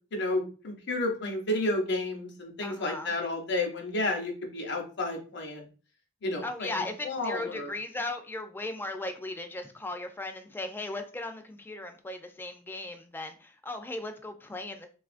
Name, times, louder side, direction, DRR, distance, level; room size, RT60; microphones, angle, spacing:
voice 1, 0.1-5.7 6.2-7.7, left 2 dB, 60° left, 1 dB, 0.7 m, -31 dB
voice 2, 2.6-3.1 6.4-14.9, left 2 dB, 10° left, 6 dB, 0.3 m, -37 dB
3.6 x 2.3 x 2.4 m, 0.37 s
head